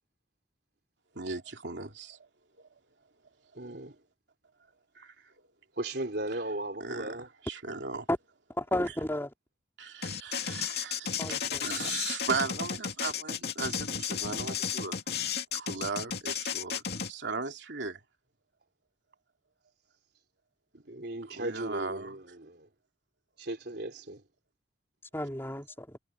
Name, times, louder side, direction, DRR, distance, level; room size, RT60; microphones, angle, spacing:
voice 1, 1.1-2.2 2.6-2.7 5.0-5.1 6.8-8.1 9.8-15.0 15.5-16.8 17.1-18.0 21.3-22.1, right 4 dB, 75° right, 2.7 m, -37 dB
voice 2, 3.6-4.0 5.8-7.3 20.7-22.7 23.4-24.2, right 1 dB, 60° right, 4.0 m, -37 dB
voice 3, 8.6-9.3 11.2-11.7 25.1-26.0, left 1 dB, 15° left, 3.4 m, -32 dB
sound 1, 10.0-17.1, left 7 dB, 60° left, 2.7 m, -33 dB
head